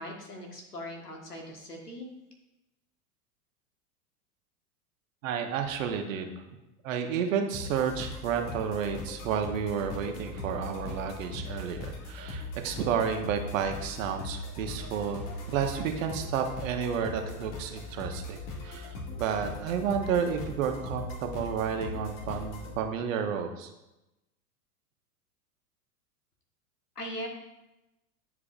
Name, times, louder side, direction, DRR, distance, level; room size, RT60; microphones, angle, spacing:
voice 1, 0.0-2.1 26.9-27.3, equal, 90° left, 1 dB, 1.5 m, -40 dB
voice 2, 5.2-6.3 6.8-23.7, right 7 dB, 60° right, 5 dB, 1.1 m, -31 dB
sound 1, 7.5-22.8, left 2 dB, 50° left, 1.6 m, -40 dB
10.0 x 4.7 x 2.5 m, 0.97 s
figure-of-eight pair, 90°, 45 cm